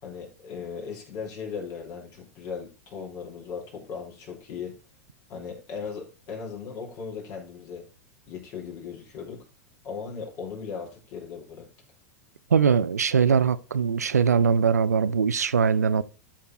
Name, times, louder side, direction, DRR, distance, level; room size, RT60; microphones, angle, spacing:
voice 1, 0.0-4.8 5.3-7.9 8.3-9.4 9.8-11.7, left 6 dB, 45° left, 4.4 m, -37 dB
voice 2, 12.5-16.0, right 6 dB, 90° right, 0.5 m, -21 dB
13.0 x 4.6 x 4.1 m
hypercardioid pair, 95°, 8 cm